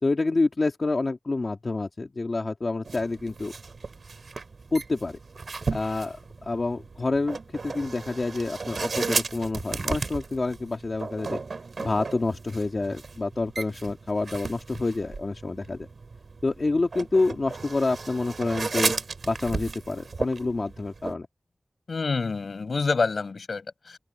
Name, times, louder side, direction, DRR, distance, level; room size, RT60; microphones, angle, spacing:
voice 1, 0.0-3.5 4.7-5.2 5.7-6.2 6.4-11.4 11.8-15.9 16.4-18.9 19.3-21.3, left 3 dB, 50° left, 2.2 m, -28 dB
sound 1, 2.8-21.1, right 4 dB, 80° right, 4.0 m, -35 dB
voice 2, 21.9-24.0, left 4 dB, 85° left, 7.2 m, -27 dB
open air
wide cardioid pair, 90°, 0 cm